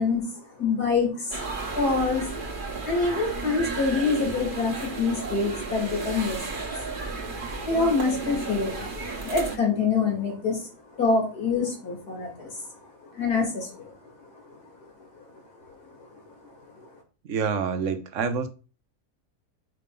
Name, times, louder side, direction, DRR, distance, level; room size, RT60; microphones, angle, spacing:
voice 1, 0.0-1.4 1.7-2.3 2.8-6.7 7.7-8.7 9.2-10.7 11.0-12.7 13.0-13.9 14.5-14.6 15.2-15.3 15.7-15.8 16.8-16.9, left 4 dB, 80° left, 2.8 m, -26 dB
sound 1, 1.3-9.6, right 3 dB, 35° right, 1.2 m, -33 dB
voice 2, 17.3-18.5, right 6 dB, 60° right, 1.1 m, -27 dB
5.8 x 5.2 x 3.8 m
omnidirectional pair, 1.6 m